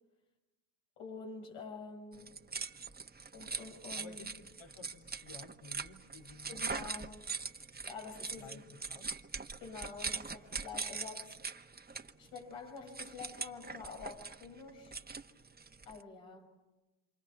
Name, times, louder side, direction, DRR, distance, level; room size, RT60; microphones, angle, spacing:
voice 1, 1.0-2.4 3.3-4.2 6.5-7.3 7.8-8.6 9.6-11.4 12.2-14.9 15.9-16.6, left 4 dB, 85° left, 2 dB, 6.9 m, -47 dB
sound 1, 2.1-16.0, right 4 dB, 20° right, 1.3 m, -42 dB
voice 2, 3.9-6.7 8.4-9.3, left 4 dB, 60° left, 5 dB, 2.9 m, -54 dB
27.5 x 27.5 x 6.0 m, 1.0 s
supercardioid pair, 65°, 47 cm